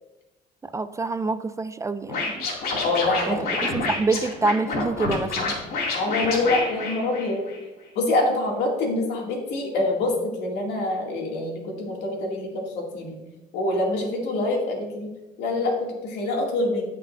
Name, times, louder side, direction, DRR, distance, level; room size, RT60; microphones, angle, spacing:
voice 1, 0.7-2.5 3.3-3.4 3.6-5.6, right 3 dB, 20° right, 12 dB, 0.3 m, -26 dB
Scratching (performance technique), 2.1-7.6, left 3 dB, 65° left, 2.3 m, -28 dB
voice 2, 2.8-3.5 5.9-7.4 7.9-13.1 13.5-15.1 15.4-16.9, left 2 dB, 85° left, -1 dB, 2.3 m, -25 dB
16.5 x 5.6 x 2.5 m, 1.1 s
cardioid pair, 110°, 17 cm